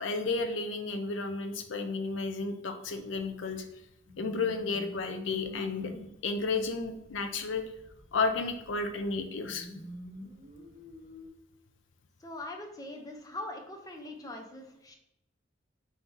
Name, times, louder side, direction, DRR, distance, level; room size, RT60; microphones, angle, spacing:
voice 1, 0.0-3.7 4.2-5.9 6.2-7.6 8.1-9.7, left 4 dB, 65° left, 7 dB, 0.5 m, -32 dB
sound 1, 2.8-11.3, left 1 dB, 45° left, 1.4 m, -47 dB
voice 2, 12.2-15.0, left 1 dB, 20° left, 3 dB, 0.5 m, -42 dB
3.6 x 2.7 x 4.6 m, 0.86 s
head